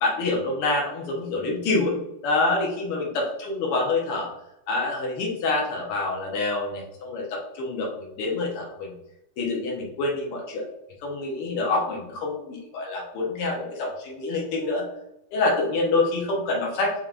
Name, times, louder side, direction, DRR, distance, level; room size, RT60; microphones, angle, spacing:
voice 1, 0.0-2.0 2.2-4.3 4.7-8.9 9.4-10.7 11.0-14.9 15.3-16.9, left 3 dB, 90° left, -2 dB, 1.9 m, -26 dB
4.6 x 3.5 x 2.4 m, 0.85 s
omnidirectional pair, 2.4 m